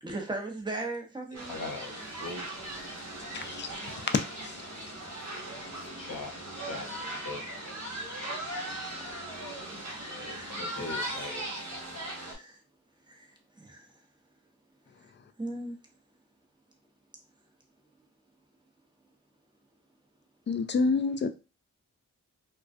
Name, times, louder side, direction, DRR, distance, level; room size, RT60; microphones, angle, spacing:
voice 1, 0.0-1.6 6.1-6.2 8.9-9.6 10.1-11.1 11.5-12.6 13.1-13.9 15.4-15.8, right 2 dB, 15° right, 0.8 m, -40 dB
sound 1, 1.3-12.3, right 1 dB, 50° right, 1.0 m, -38 dB
voice 2, 1.5-1.9 2.2-2.4 5.8-7.0 7.2-7.5 10.0-11.5, left 3 dB, 65° left, 0.9 m, -40 dB
voice 3, 3.3-3.7 4.1-4.7 20.5-21.3, left 4 dB, 35° left, 0.4 m, -28 dB
2.3 x 2.2 x 2.5 m
cardioid pair, 40°, 34 cm